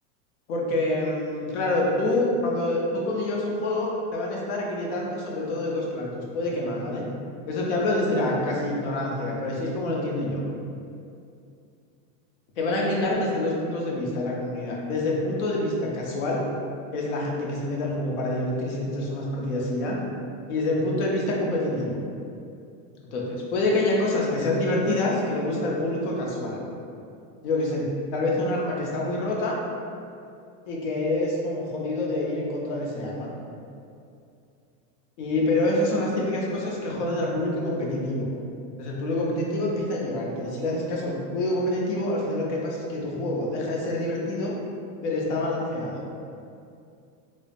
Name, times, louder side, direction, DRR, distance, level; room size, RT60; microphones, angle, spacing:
voice 1, 0.5-7.0 7.5-10.4 12.6-16.4 16.9-20.0 20.5-22.0 23.1-26.6 27.4-29.6 30.7-33.3 35.2-38.3 38.8-44.5 45.0-46.0, left 1 dB, 60° left, -2 dB, 0.6 m, -26 dB
3.0 x 2.0 x 2.4 m, 2.5 s
supercardioid pair, 180°, 40 cm